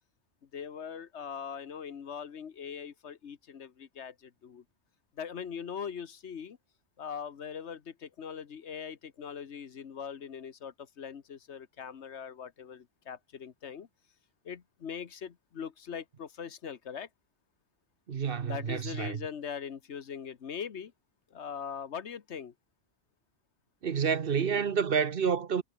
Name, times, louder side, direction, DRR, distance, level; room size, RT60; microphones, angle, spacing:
voice 1, 0.5-4.6 5.2-6.6 7.0-13.9 14.4-17.1 18.4-20.9 21.3-22.5, left 7 dB, 80° left, 1.5 m, -41 dB
voice 2, 18.1-19.2 23.8-25.6, right 6 dB, 55° right, 1.1 m, -29 dB
omnidirectional pair, 1.1 m